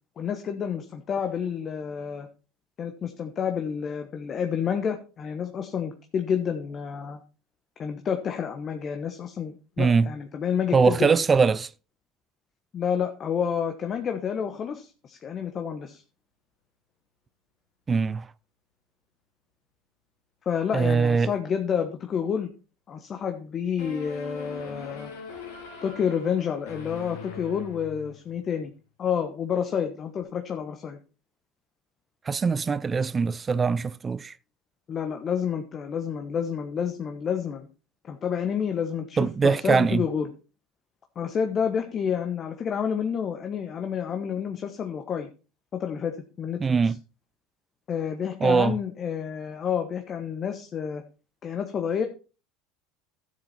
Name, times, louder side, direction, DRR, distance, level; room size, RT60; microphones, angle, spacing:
voice 1, 0.2-2.3 2.8-7.2 7.8-11.1 12.7-16.0 20.4-22.5 22.9-25.1 25.8-28.7 29.0-31.0 34.9-37.7 38.0-40.3 41.1-45.3 45.7-46.9 47.9-51.0 51.4-52.0, left 7 dB, 40° left, 1.3 m, -29 dB
voice 2, 9.8-10.1 10.7-11.7 17.9-18.3 20.7-21.3 32.3-34.3 39.2-40.0 46.6-47.0 48.4-48.8, right 5 dB, 25° right, 0.5 m, -22 dB
sound 1, 23.8-28.4, left 6 dB, 85° left, 3.2 m, -41 dB
12.5 x 7.3 x 4.3 m
hypercardioid pair, 85°, 0 cm